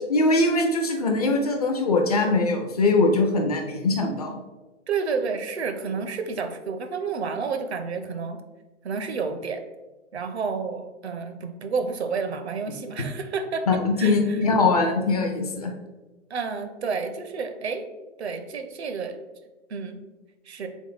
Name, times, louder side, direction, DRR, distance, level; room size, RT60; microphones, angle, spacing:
voice 1, 0.1-4.4 13.7-15.7, left 3 dB, 30° left, 2 dB, 0.4 m, -22 dB
voice 2, 4.9-8.4 8.8-9.6 10.1-13.7 14.0-14.4 16.3-17.9 18.2-19.2 19.7-20.0 20.5-20.7, right 5 dB, 60° right, 7 dB, 0.6 m, -30 dB
3.5 x 3.1 x 3.8 m, 1.2 s
figure-of-eight pair, 125°, 37 cm